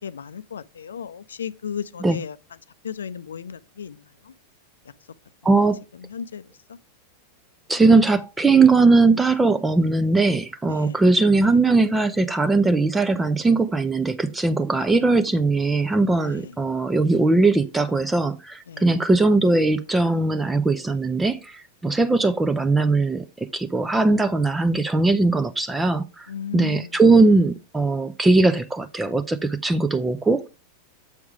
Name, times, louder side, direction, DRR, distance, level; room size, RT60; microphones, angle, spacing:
voice 1, 0.0-2.4 2.8-4.0 4.2-4.3 6.0-6.8 10.6-11.0 16.2-16.5 18.7-18.9 26.3-27.0, left 7 dB, 70° left, 0.5 m, -35 dB
voice 2, 5.4-5.8 7.7-26.3 26.5-30.5, right 3 dB, 10° right, 0.5 m, -20 dB
7.4 x 4.6 x 4.8 m
figure-of-eight pair, 90°, 0 cm